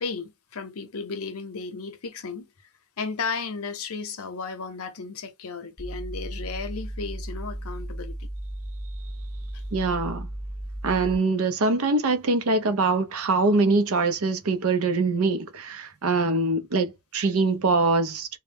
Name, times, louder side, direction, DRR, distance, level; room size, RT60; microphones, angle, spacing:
voice 1, 0.0-2.5 3.0-8.2, left 4 dB, 85° left, 0.7 m, -34 dB
sound 1, 5.8-11.2, right 1 dB, ahead, 0.4 m, -35 dB
voice 2, 9.7-10.3 10.8-18.3, right 3 dB, 85° right, 0.6 m, -23 dB
2.2 x 2.0 x 3.3 m
head